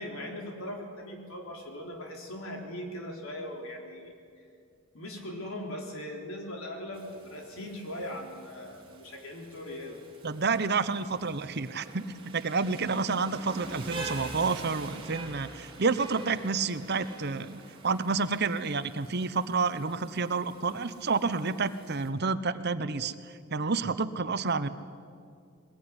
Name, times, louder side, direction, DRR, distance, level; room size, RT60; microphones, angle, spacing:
voice 1, 0.0-4.5 4.9-10.0, left 1 dB, 75° left, 1 dB, 4.1 m, -40 dB
Rain, 6.9-22.1, right 2 dB, 25° right, 3.8 m, -46 dB
voice 2, 10.2-12.0 12.3-23.1 23.5-24.7, right 4 dB, 50° right, 13 dB, 0.9 m, -29 dB
21.5 x 20.5 x 9.8 m, 2.3 s
head